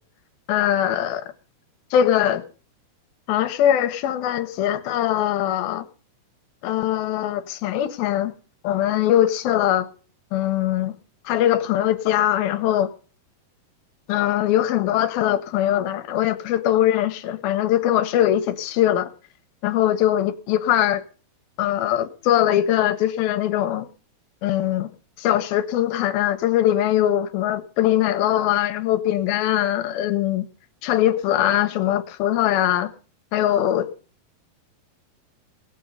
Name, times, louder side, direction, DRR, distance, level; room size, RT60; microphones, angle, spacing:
voice 1, 0.5-1.2 1.9-2.4 3.3-5.9 6.6-8.3 8.6-9.9 10.3-11.0 11.3-12.9 14.1-19.1 19.6-21.0 21.6-23.9 24.4-24.9 25.2-30.5 30.8-32.9 33.3-33.9, left 12 dB, 75° left, 11 dB, 2.5 m, -21 dB
19.0 x 7.7 x 5.3 m, 0.38 s
omnidirectional pair, 4.5 m